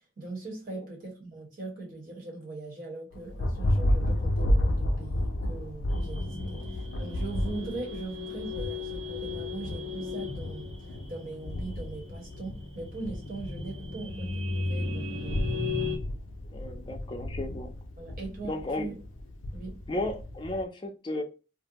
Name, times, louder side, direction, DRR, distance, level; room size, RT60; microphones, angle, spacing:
voice 1, 0.2-10.7 11.1-15.6 18.0-18.9 19.5-19.8, right 2 dB, 45° right, 1.1 m, -40 dB
Thunder, 3.1-20.6, left 1 dB, 85° left, 0.4 m, -32 dB
sound 1, 5.9-16.0, left 3 dB, 90° right, 1.2 m, -36 dB
voice 2, 16.5-17.7 18.4-18.9 19.9-21.2, left 1 dB, 25° left, 0.4 m, -34 dB
2.5 x 2.1 x 2.8 m
head